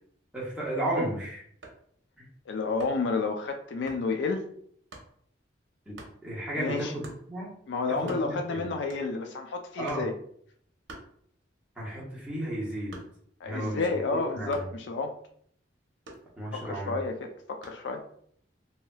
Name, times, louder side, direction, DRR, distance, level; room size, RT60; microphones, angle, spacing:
voice 1, 0.3-1.4 2.2-2.3 5.9-6.0 6.2-7.5 7.9-8.7 9.8-10.1 11.8-13.0 13.4-14.7 16.4-17.0, right 1 dB, 5° right, -7 dB, 1.0 m, -33 dB
sound 1, 1.6-1.9 2.8-3.1 3.9-4.1 4.9-5.1 6.0-6.2 7.0-7.3 7.7-7.8 8.0-8.5 8.9-9.3 9.9-10.2 10.9-11.6 12.0-13.4 14.5-14.8 16.1-16.7 17.6-17.9, right 2 dB, 90° right, 0.7 m, -47 dB
voice 2, 2.5-4.4 6.6-6.9 7.7-10.1 13.4-15.1 16.5-18.0, left 3 dB, 70° left, 5 dB, 0.4 m, -30 dB
3.1 x 2.8 x 2.2 m, 0.64 s
head